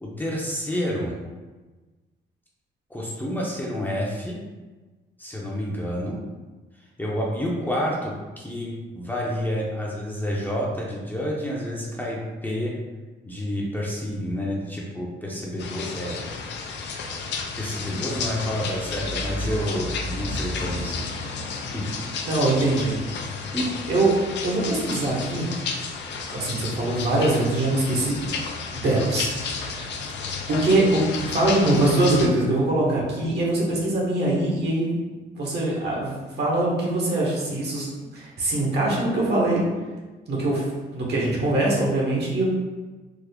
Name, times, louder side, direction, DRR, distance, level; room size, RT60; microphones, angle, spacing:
voice 1, 0.0-1.1 2.9-4.4 5.2-6.2 7.0-12.7 13.2-16.2 17.6-21.1 21.7-21.8 23.5-23.7, equal, 10° left, -4 dB, 0.6 m, -29 dB
sound 1, 15.6-32.3, left 4 dB, 65° left, 0.5 m, -32 dB
voice 2, 22.3-23.0 23.4-23.5 23.9-24.1 24.4-25.5 26.3-28.2 28.7-29.9 30.5-34.9 35.3-37.9 38.1-39.7 40.3-40.7 40.9-42.4, right 2 dB, 60° right, -3 dB, 1.1 m, -23 dB
3.6 x 2.0 x 3.4 m, 1.3 s
cardioid pair, 90°, 20 cm